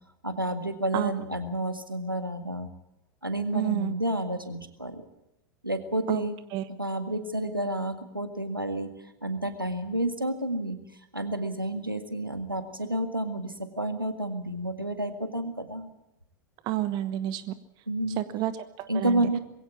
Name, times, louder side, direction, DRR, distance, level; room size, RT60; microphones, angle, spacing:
voice 1, 0.2-2.7 3.2-5.1 5.6-6.3 6.8-8.9 9.2-10.8 11.1-15.9 17.9-18.2 18.9-19.4, right 1 dB, 90° right, 8 dB, 1.8 m, -30 dB
voice 2, 3.5-3.9 6.1-6.2 6.5-6.6 16.6-17.5 18.2-18.5 18.8-19.3, right 14 dB, 40° right, 14 dB, 1.1 m, -29 dB
21.5 x 16.5 x 8.4 m, 0.87 s
figure-of-eight pair, 85°, 11 cm